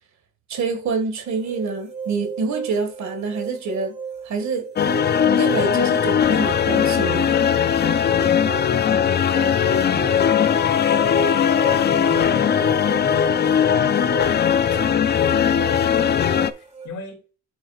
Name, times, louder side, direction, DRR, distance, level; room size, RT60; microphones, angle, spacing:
voice 1, 0.5-3.9 4.3-4.6 5.3-7.3, right 4 dB, 65° right, 1.9 m, -26 dB
sound 1, 1.2-16.9, right 6 dB, 20° right, 2.6 m, -36 dB
sound 2, 4.8-16.5, left 8 dB, 35° left, 0.5 m, -19 dB
voice 2, 8.6-14.4 16.0-17.2, left 4 dB, 70° left, 2.6 m, -37 dB
11.5 x 4.4 x 2.4 m
cardioid pair, 90°, 30 cm